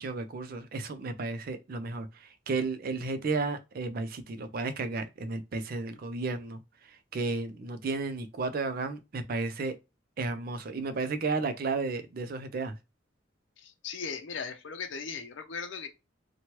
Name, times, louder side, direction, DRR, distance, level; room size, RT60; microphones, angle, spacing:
voice 1, 0.0-6.6 7.1-9.8 10.2-12.7, right 3 dB, 50° right, 0.4 m, -33 dB
voice 2, 13.6-15.9, left 5 dB, 75° left, 0.6 m, -38 dB
2.9 x 2.2 x 2.9 m
head